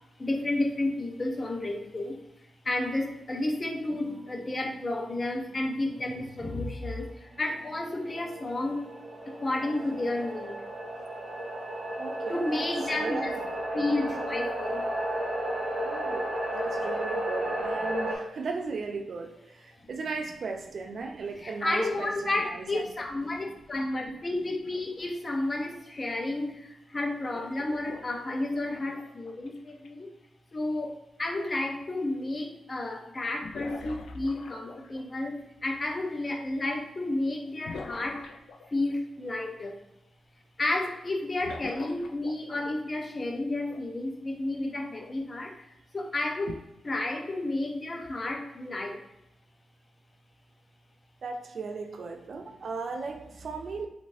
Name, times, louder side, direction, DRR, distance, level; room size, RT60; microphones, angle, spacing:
voice 1, 0.2-2.1 2.7-7.1 7.4-8.9 9.4-10.5 12.3-13.4 13.7-14.8 21.4-26.6 26.9-30.1 30.5-38.2 38.7-39.7 40.6-45.5 45.9-46.5 46.8-49.0, left 2 dB, 40° left, 2 dB, 0.7 m, -31 dB
sound 1, 3.9-6.4 6.8-6.9 7.6-18.2, right 1 dB, 85° right, 0.8 m, -34 dB
voice 2, 12.0-12.7 12.9-13.4 15.8-22.9 51.2-53.9, right 4 dB, 65° right, 5 dB, 0.4 m, -37 dB
sound 2, 27.2-29.9 31.8-31.9 33.4-35.2 37.6-38.9 41.4-42.9 43.6-43.8 45.0-45.2 46.5-46.6, left 4 dB, 75° left, 0.3 m, -44 dB
3.0 x 2.5 x 2.6 m, 0.87 s
supercardioid pair, 45°, 0 cm